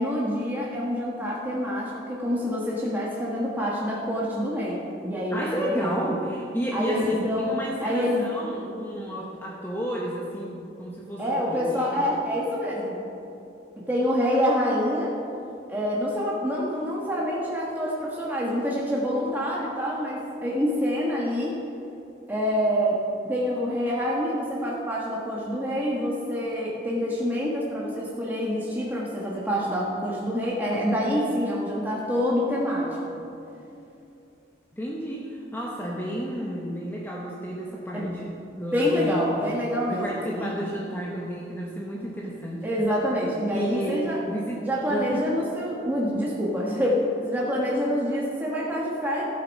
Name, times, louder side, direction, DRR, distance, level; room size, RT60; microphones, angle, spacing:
voice 1, 0.0-4.8 5.0-5.9 6.7-7.5 7.8-8.3 11.2-13.0 13.9-15.1 15.7-21.5 22.3-23.0 23.2-33.1 37.9-38.4 38.7-40.6 42.6-44.2 44.6-49.2, equal, 10° right, -5 dB, 1.3 m, -26 dB
voice 2, 5.3-12.1 34.7-38.3 38.6-39.4 39.9-42.7 43.5-45.2, equal, 10° left, -3 dB, 0.9 m, -32 dB
13.5 x 7.8 x 5.3 m, 2.8 s
head